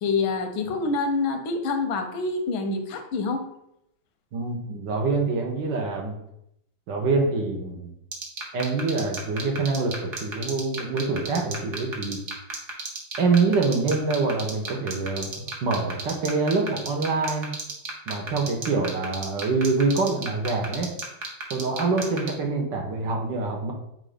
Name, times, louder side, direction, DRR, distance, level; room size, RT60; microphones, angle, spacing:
voice 1, 0.0-3.5, left 3 dB, 85° left, 6 dB, 1.6 m, -26 dB
voice 2, 4.3-6.2 6.9-7.9 8.5-12.2 13.2-15.3 15.6-17.5 18.1-20.9 21.5-23.7, right 3 dB, 65° right, 1 dB, 1.6 m, -25 dB
sound 1, 8.1-22.3, right 4 dB, 45° right, 1.1 m, -32 dB
7.4 x 2.7 x 5.0 m, 0.78 s
omnidirectional pair, 2.1 m